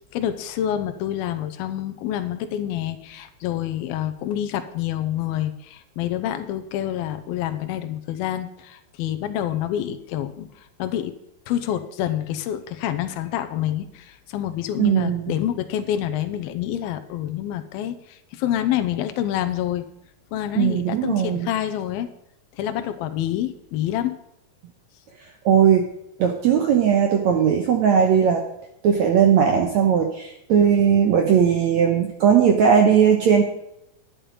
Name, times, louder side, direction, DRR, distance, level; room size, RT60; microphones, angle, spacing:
voice 1, 0.1-10.5 10.8-11.1 11.5-19.8 20.3-22.1 22.6-24.2, left 11 dB, 80° left, 9 dB, 2.6 m, -27 dB
voice 2, 14.8-15.3 20.5-21.5 25.4-25.9 26.2-28.4 28.8-33.4, right 7 dB, 70° right, 3 dB, 1.7 m, -18 dB
11.0 x 10.0 x 5.3 m, 0.82 s
omnidirectional pair, 4.5 m